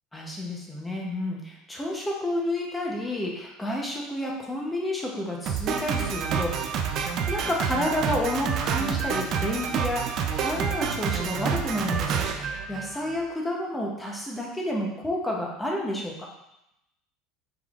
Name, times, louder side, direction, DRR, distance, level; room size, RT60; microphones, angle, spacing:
voice 1, 0.1-6.7 7.3-16.3, left 1 dB, 10° left, -1 dB, 0.7 m, -30 dB
Drum kit, 5.5-13.2, right 6 dB, 40° right, 0.4 m, -28 dB
4.8 x 3.7 x 2.4 m, 0.85 s
supercardioid pair, 150°, 0 cm